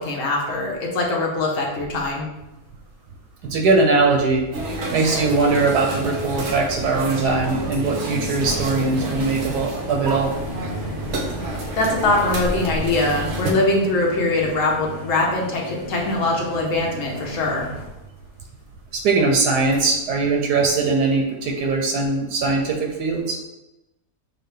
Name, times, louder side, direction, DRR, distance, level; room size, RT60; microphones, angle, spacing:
voice 1, 0.0-2.3 11.8-17.7, left 2 dB, 55° left, -2 dB, 1.1 m, -22 dB
sound 1, 2.7-2.9 3.2-3.3 3.5-3.6 4.0-4.1 4.6-4.7 4.9-5.1 5.5-6.1 6.7-18.9 19.3-19.4 19.7-19.9 20.1-20.5 20.8-20.9, left 1 dB, 70° left, 1.6 m, -36 dB
voice 2, 3.4-4.4 4.9-10.3 18.9-23.4, right 3 dB, 80° right, 2 dB, 1.2 m, -20 dB
sound 2, 4.5-13.5, right 1 dB, 60° right, 0.8 m, -29 dB
6.4 x 2.5 x 3.3 m, 0.94 s
omnidirectional pair, 1.8 m